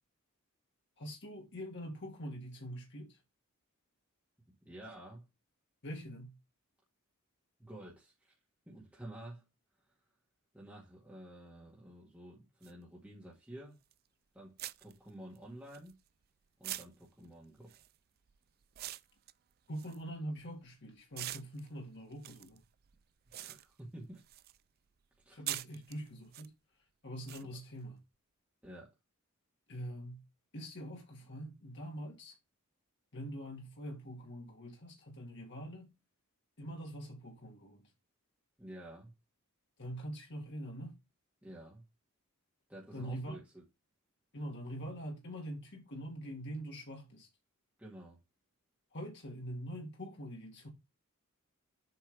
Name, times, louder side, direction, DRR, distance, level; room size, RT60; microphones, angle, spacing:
voice 1, 1.0-3.2 5.8-6.4 19.7-22.6 25.3-26.5 27.0-28.0 29.7-30.2 30.5-32.3 33.1-35.9 36.6-37.8 39.8-41.0 42.9-43.4 44.3-47.3 48.9-50.7, equal, 55° left, 1.9 m, -44 dB
voice 2, 4.7-5.3 7.6-8.3 8.7-9.4 10.5-13.8 14.3-16.0 16.6-17.8 23.4-24.2 25.2-25.4 27.5-27.6 28.6-28.9 38.6-39.1 41.4-41.8 42.7-43.6 47.8-48.2, right 1 dB, 5° right, 1.9 m, -50 dB
sound 1, 12.6-12.7 13.9-14.1 14.6-16.2 16.6-20.7 21.1-24.6 24.9-26.5 27.3-27.4, right 14 dB, 45° right, 0.4 m, -45 dB
7.8 x 3.6 x 4.9 m
head